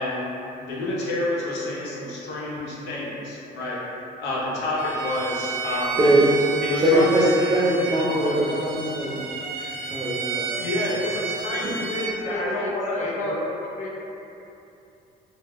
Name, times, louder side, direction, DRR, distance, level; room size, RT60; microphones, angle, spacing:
voice 1, 0.0-3.8 4.2-6.1 6.6-8.5 10.6-13.4, left 1 dB, 85° left, -6 dB, 0.7 m, -29 dB
Bowed string instrument, 4.8-12.2, right 5 dB, 70° right, 0.4 m, -31 dB
voice 2, 5.6-6.2 6.8-9.2 9.6-10.7 11.6-11.7, right 1 dB, 25° right, -7 dB, 0.6 m, -22 dB
voice 3, 11.3-11.9 12.2-13.3 13.8-14.0, left 2 dB, 45° left, -4 dB, 0.4 m, -34 dB
2.2 x 2.1 x 3.5 m, 2.9 s
cardioid pair, 110°, 17 cm